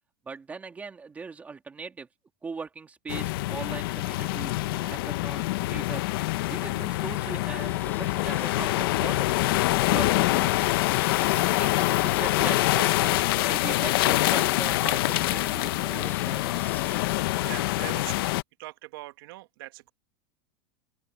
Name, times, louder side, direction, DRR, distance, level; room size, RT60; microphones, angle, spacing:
voice 1, 0.3-2.1 2.4-6.0 6.5-9.6 9.9-10.7 11.3-16.7, right 4 dB, 10° right, 2.6 m, -40 dB
sound 1, 3.1-18.4, left 18 dB, 65° left, 0.7 m, -25 dB
sound 2, 7.6-17.8, left 6 dB, 15° left, 6.4 m, -44 dB
voice 2, 17.4-18.3 18.6-19.9, right 19 dB, 65° right, 1.6 m, -41 dB
open air
supercardioid pair, 175°, 13 cm